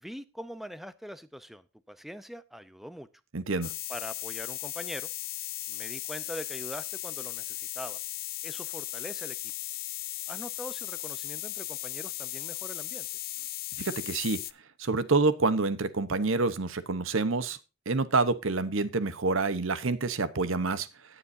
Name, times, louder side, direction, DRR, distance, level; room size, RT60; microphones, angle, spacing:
voice 1, 0.0-3.1 3.9-5.1 5.7-8.0 8.4-9.4 10.3-13.1, equal, ahead, 14 dB, 0.7 m, -42 dB
voice 2, 3.3-3.7 13.8-14.4 14.8-17.6 17.9-20.9, right 3 dB, 65° right, 14 dB, 1.0 m, -27 dB
sound 1, 3.6-14.5, left 16 dB, 45° left, 0.5 m, -37 dB
18.5 x 7.1 x 2.7 m, 0.28 s
head